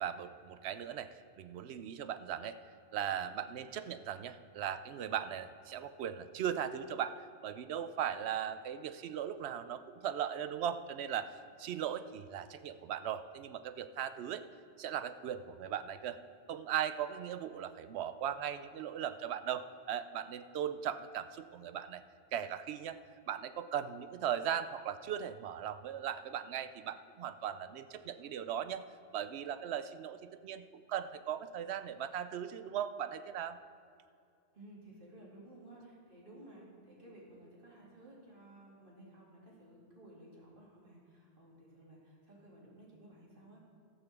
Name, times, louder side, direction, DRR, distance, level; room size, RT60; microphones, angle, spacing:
voice 1, 0.0-2.6 2.9-14.4 14.8-16.2 16.5-22.0 22.3-23.0 23.3-28.9 29.1-33.6, right 9 dB, 70° right, 12 dB, 0.8 m, -38 dB
voice 2, 34.5-43.6, right 1 dB, 45° right, -5 dB, 2.9 m, -56 dB
14.0 x 5.6 x 7.0 m, 2.4 s
omnidirectional pair, 1.2 m